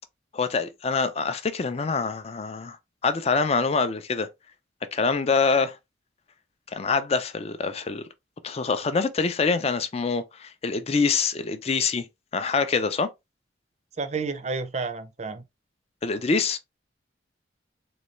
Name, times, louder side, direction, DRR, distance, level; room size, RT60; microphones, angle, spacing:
voice 1, 0.3-2.8 3.0-4.3 4.9-5.8 6.7-8.0 8.4-12.1 12.3-13.1 16.0-16.6, left 4 dB, 35° left, 0.4 m, -25 dB
voice 2, 14.0-15.4, right 4 dB, 35° right, 0.5 m, -30 dB
3.9 x 2.3 x 3.1 m
head